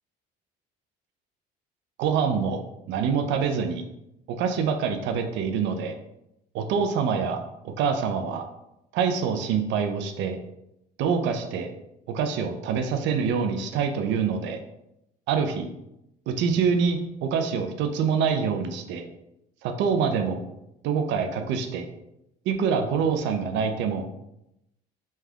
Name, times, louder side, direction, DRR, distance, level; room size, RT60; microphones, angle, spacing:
voice 1, 2.0-2.6 2.9-3.8 4.4-5.9 6.5-7.4 7.8-8.5 8.9-10.4 11.0-11.7 12.1-14.6 15.3-15.7 16.3-19.0 19.6-20.4 20.8-21.9 22.5-24.0, right 6 dB, 75° right, 5 dB, 0.6 m, -25 dB
3.4 x 3.2 x 3.5 m, 0.84 s
supercardioid pair, 85°, 19 cm